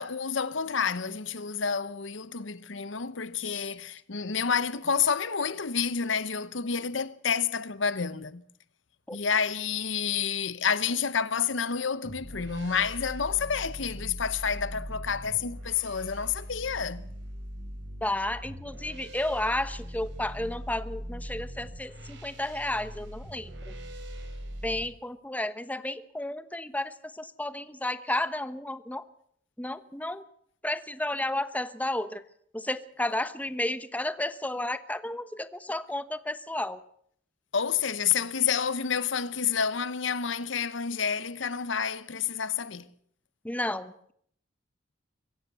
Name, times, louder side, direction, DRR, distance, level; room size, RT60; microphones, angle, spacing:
voice 1, 0.0-8.4 9.1-17.0 37.5-42.9, left 6 dB, 75° left, 0.9 m, -29 dB
sound 1, 12.0-24.8, equal, 65° right, 5.3 m, -41 dB
voice 2, 18.0-23.7 24.6-29.0 29.6-30.2 30.6-32.2 32.5-36.8 43.4-44.1, left 1 dB, 10° left, 1.1 m, -32 dB
24.0 x 16.0 x 6.9 m
head